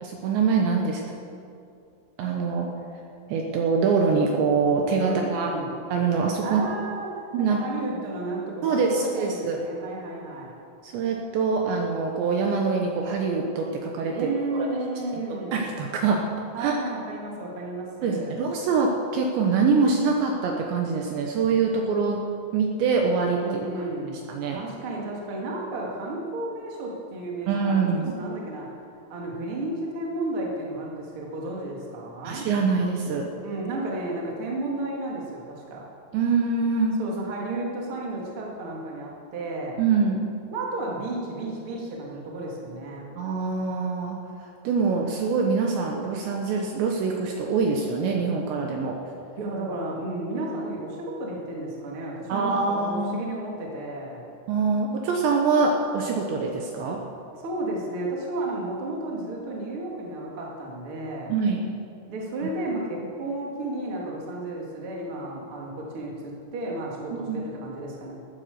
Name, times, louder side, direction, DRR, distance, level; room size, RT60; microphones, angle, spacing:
voice 1, 0.0-1.0 2.2-2.7 3.3-5.5 5.9-6.6 7.3-7.6 8.6-9.6 10.8-14.1 14.5-14.7 15.5-16.2 16.6-16.8 18.0-22.2 22.5-23.4 24.3-24.6 27.5-28.2 32.2-33.3 36.1-37.0 39.8-40.3 43.2-44.2 44.6-49.0 52.3-53.2 54.5-57.0 61.3-61.7 67.1-67.4, right 4 dB, 75° right, 1 dB, 2.9 m, -24 dB
voice 2, 5.0-5.7 6.4-10.5 14.1-15.6 16.5-18.4 23.4-24.2 24.5-28.7 29.1-32.5 33.4-35.9 37.0-39.8 40.5-43.2 49.4-54.3 57.4-61.3 62.1-68.1, right 2 dB, 40° right, -2 dB, 2.0 m, -33 dB
14.0 x 10.0 x 6.8 m, 2.5 s
omnidirectional pair, 5.8 m